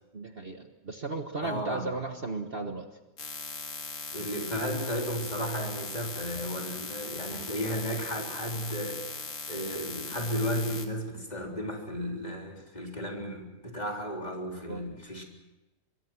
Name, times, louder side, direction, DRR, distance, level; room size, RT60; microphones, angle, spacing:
voice 1, 0.1-2.9 14.7-14.8, right 3 dB, 40° right, 5 dB, 1.5 m, -35 dB
voice 2, 1.3-1.9 4.1-15.2, equal, 25° left, 1 dB, 3.9 m, -34 dB
sound 1, 3.2-10.9, left 4 dB, 75° left, 2.6 m, -39 dB
25.0 x 23.0 x 6.2 m, 1.0 s
omnidirectional pair, 1.6 m